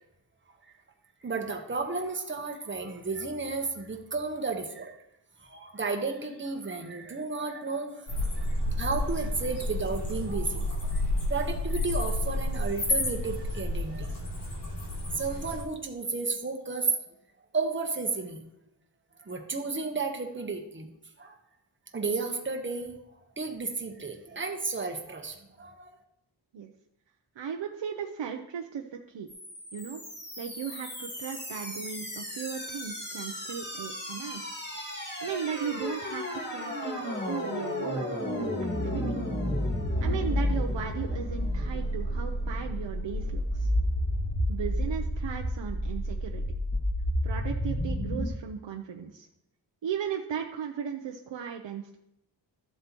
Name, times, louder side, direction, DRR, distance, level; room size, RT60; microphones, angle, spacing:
voice 1, 1.2-5.0 5.4-11.0 11.3-14.2 15.2-17.0 17.5-18.4 19.2-20.9 21.2-21.4 21.9-23.0 23.4-25.9, right 4 dB, 25° right, 3 dB, 1.1 m, -33 dB
sound 1, 8.1-15.6, left 1 dB, 65° left, 3.1 m, -30 dB
voice 2, 27.4-29.3 29.7-30.0 30.4-34.4 35.2-38.1 38.4-38.5 38.8-39.1 40.0-43.7 44.5-46.4 47.2-49.3 49.8-52.0, right 7 dB, 75° right, 3 dB, 0.7 m, -36 dB
sound 2, 29.3-48.3, equal, 25° left, 1.8 m, -31 dB
13.0 x 7.6 x 3.0 m, 0.82 s
wide cardioid pair, 135°, 45 cm